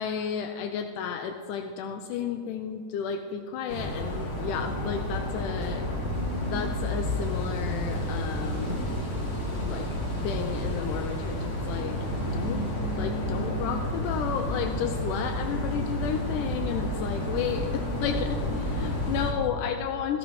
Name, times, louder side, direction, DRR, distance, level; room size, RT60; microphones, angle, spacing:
voice 1, 0.0-5.8 6.5-8.8 9.6-9.9 10.2-12.0 12.3-12.7 13.0-20.2, left 8 dB, 80° left, 5 dB, 2.1 m, -32 dB
sound 1, 3.7-19.3, equal, 40° left, 4.5 m, -30 dB
16.0 x 14.5 x 3.1 m, 2.7 s
omnidirectional pair, 3.8 m